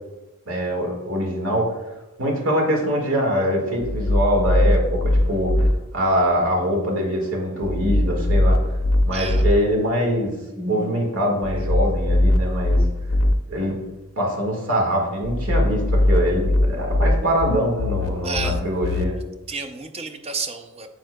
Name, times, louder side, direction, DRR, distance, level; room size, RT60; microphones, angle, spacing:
voice 1, 0.4-1.7 2.2-8.6 9.0-12.8 13.5-13.8 14.2-19.1, equal, 65° right, 0 dB, 1.7 m, -23 dB
sound 1, 3.8-5.7 7.6-9.5 11.4-13.3 15.2-19.0, left 1 dB, 70° left, 0.5 m, -21 dB
voice 2, 9.1-9.5 18.2-18.6 19.5-20.9, right 4 dB, 25° right, 7 dB, 0.5 m, -30 dB
8.0 x 7.3 x 2.2 m, 1.1 s
head